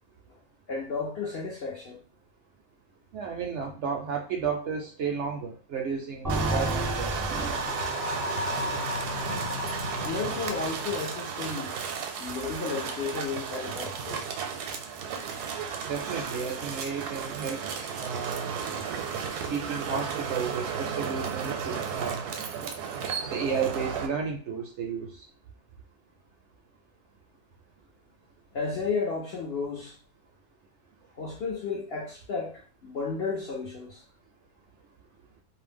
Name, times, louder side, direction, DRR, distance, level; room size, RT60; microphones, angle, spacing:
voice 1, 0.7-2.0 10.0-11.7 12.2-14.3 28.5-30.0 31.2-34.0, left 4 dB, 70° left, 0.6 m, -33 dB
voice 2, 3.1-7.4 15.9-17.6 18.0-18.6 19.5-22.2 23.3-25.2, right 6 dB, 65° right, 0.7 m, -33 dB
sound 1, 6.2-10.0, right 1 dB, 25° right, 0.5 m, -33 dB
sound 2, 6.3-24.1, right 6 dB, 85° right, 1.1 m, -34 dB
sound 3, 7.3-11.2, left 3 dB, 40° left, 0.8 m, -35 dB
2.6 x 2.0 x 3.4 m
omnidirectional pair, 1.6 m